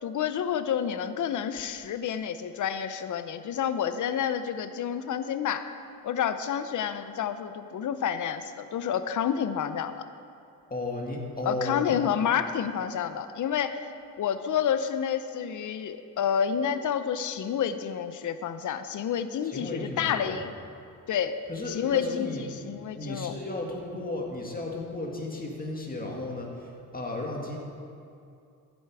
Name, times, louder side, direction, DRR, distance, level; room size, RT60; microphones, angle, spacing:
voice 1, 0.0-5.7 6.0-10.0 11.5-13.9 14.2-20.5 21.1-21.3 21.7-23.4, left 8 dB, 55° left, 11 dB, 0.7 m, -29 dB
voice 2, 10.7-12.0 19.4-20.4 21.5-27.6, left 2 dB, 25° left, 0 dB, 2.0 m, -34 dB
14.0 x 8.0 x 4.8 m, 2.5 s
cardioid pair, 90°, 36 cm